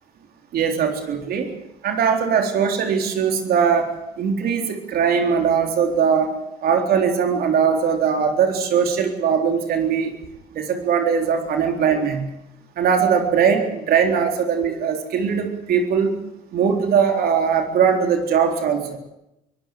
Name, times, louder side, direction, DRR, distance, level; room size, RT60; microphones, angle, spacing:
voice 1, 0.5-1.5 1.8-6.3 6.6-10.1 10.5-12.3 12.8-16.1 16.5-19.0, right 7 dB, 65° right, 4 dB, 3.9 m, -20 dB
23.0 x 17.5 x 7.8 m, 0.87 s
cardioid pair, 110°, 17 cm